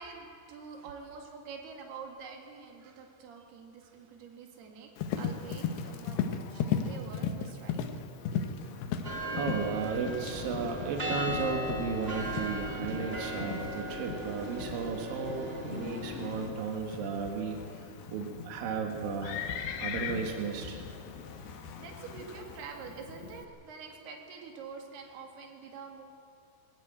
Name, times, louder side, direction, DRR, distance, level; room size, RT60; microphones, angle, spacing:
voice 1, 0.0-6.2 6.5-7.8 8.3-8.7 21.3-26.0, right 5 dB, 85° right, 2 dB, 3.9 m, -46 dB
Livestock farm animals working animals, 5.0-23.5, left 7 dB, 85° left, 3.1 m, -38 dB
sound 1, 5.2-6.1 8.6-9.5 10.3-11.2 12.0-18.5 18.9-22.6, left 5 dB, 65° left, 3.3 m, -50 dB
sound 2, 9.0-16.5, equal, 45° right, 0.7 m, -38 dB
voice 2, 9.3-19.4 19.8-20.8, right 5 dB, 65° right, 3 dB, 3.3 m, -34 dB
21.0 x 14.5 x 8.9 m, 2.6 s
omnidirectional pair, 4.5 m